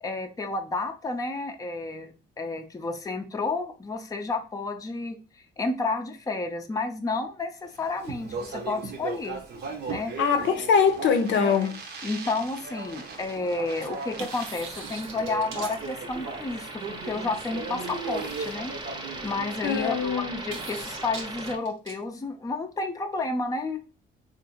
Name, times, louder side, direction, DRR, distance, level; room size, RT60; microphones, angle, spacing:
voice 1, 0.0-5.2 5.6-9.4 9.9-10.1 11.4-11.7 12.0-18.7 19.2-23.8, left 3 dB, 15° left, 0.5 m, -31 dB
Speech, 7.8-20.1, right 4 dB, 55° right, 0.7 m, -38 dB
voice 2, 10.2-11.8 19.6-20.4, left 6 dB, 70° left, 0.6 m, -23 dB
sound 1, 10.2-11.9 14.2-16.4 17.9-19.0 20.5-21.9, right 4 dB, 80° right, 0.9 m, -43 dB
sound 2, 12.3-21.6, right 2 dB, 20° right, 0.7 m, -40 dB
3.5 x 2.5 x 2.9 m
cardioid pair, 90°, 20 cm